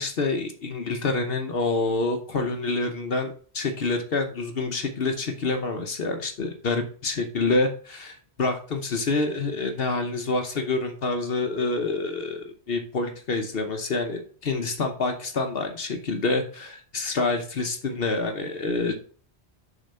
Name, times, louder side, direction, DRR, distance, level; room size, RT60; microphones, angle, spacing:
voice 1, 0.0-19.0, left 3 dB, 60° left, 5 dB, 1.1 m, -27 dB
6.9 x 3.8 x 5.4 m, 0.43 s
omnidirectional pair, 1.1 m